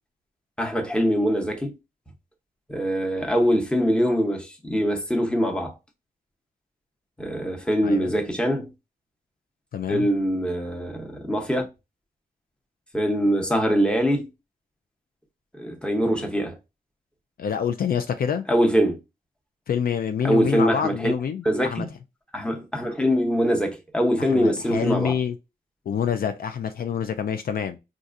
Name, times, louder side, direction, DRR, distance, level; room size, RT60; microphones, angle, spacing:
voice 1, 0.6-1.7 2.7-5.7 7.2-8.7 9.9-11.6 12.9-14.3 15.5-16.6 18.5-19.0 20.2-21.1 21.4-21.9 22.3-25.1, equal, 5° left, 0.8 m, -23 dB
voice 2, 7.8-8.1 9.7-10.1 17.4-18.4 19.7-21.9 24.2-25.3 25.9-27.8, left 7 dB, 65° left, 0.4 m, -27 dB
4.0 x 2.4 x 2.5 m
cardioid pair, 85°, 16 cm